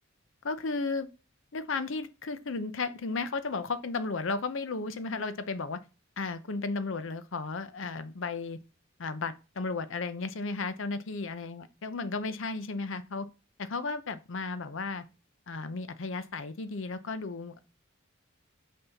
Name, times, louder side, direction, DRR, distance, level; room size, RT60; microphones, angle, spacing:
voice 1, 0.4-1.1 1.5-5.8 6.2-8.6 9.0-13.3 13.6-15.0 15.5-17.6, left 3 dB, 65° left, 0.6 m, -34 dB
5.6 x 5.4 x 4.1 m
head